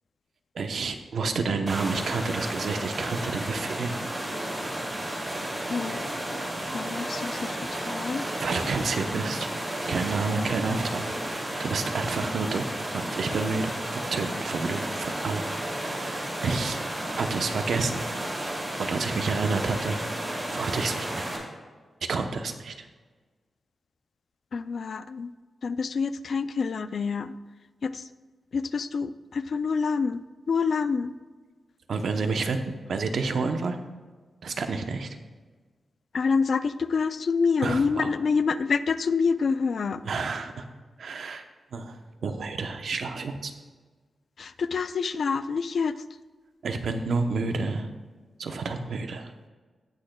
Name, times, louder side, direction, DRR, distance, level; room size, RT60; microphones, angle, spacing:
voice 1, 0.5-4.0 8.4-9.5 9.9-11.0 11.6-12.7 12.9-15.4 15.8-16.8 17.2-18.0 18.8-20.2 20.5-21.3 22.1-22.9 31.9-32.6 32.9-33.8 34.4-35.2 37.6-38.1 40.0-40.7 41.0-41.4 41.7-42.0 42.2-43.5 46.6-47.9 48.4-49.3, right 4 dB, 70° right, 7 dB, 0.8 m, -29 dB
sound 1, 1.7-21.4, right 1 dB, 25° right, 2.5 m, -32 dB
voice 2, 5.7-6.0 6.7-8.3 24.5-25.3 25.6-27.4 27.8-28.0 28.5-30.2 30.5-31.1 36.1-40.0 44.4-46.0, left 5 dB, 60° left, 13 dB, 0.4 m, -27 dB
17.5 x 6.4 x 2.2 m, 1.4 s
wide cardioid pair, 115°, 0 cm